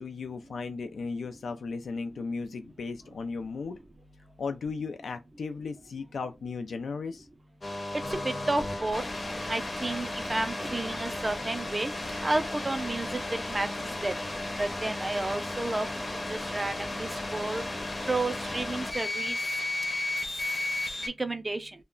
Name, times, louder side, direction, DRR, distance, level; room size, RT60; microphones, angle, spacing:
voice 1, 0.0-3.8 4.4-7.3, left 4 dB, 90° left, 0.3 m, -36 dB
sound 1, 7.6-21.1, left 2 dB, 30° left, 0.6 m, -34 dB
voice 2, 8.1-9.0 9.5-11.9 12.2-13.2 13.5-13.7 14.0-14.1 14.6-15.9 16.3-17.6 18.1-19.4 21.2-21.7, right 2 dB, 20° right, 0.3 m, -31 dB
2.2 x 2.1 x 3.6 m
wide cardioid pair, 150°, 0 cm